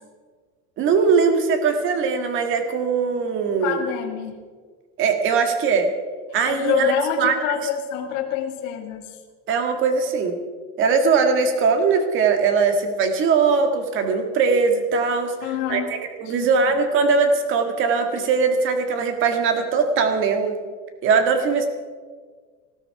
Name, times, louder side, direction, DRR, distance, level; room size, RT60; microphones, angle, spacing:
voice 1, 0.8-3.8 5.0-5.9 6.3-7.3 9.5-10.4 10.8-20.5 21.0-21.7, right 5 dB, 30° right, 6 dB, 1.9 m, -20 dB
voice 2, 3.6-4.4 6.5-9.2 15.4-15.9 16.3-16.5, left 10 dB, 65° left, 3 dB, 2.6 m, -26 dB
19.5 x 14.0 x 4.8 m, 1.5 s
supercardioid pair, 170°, 40 cm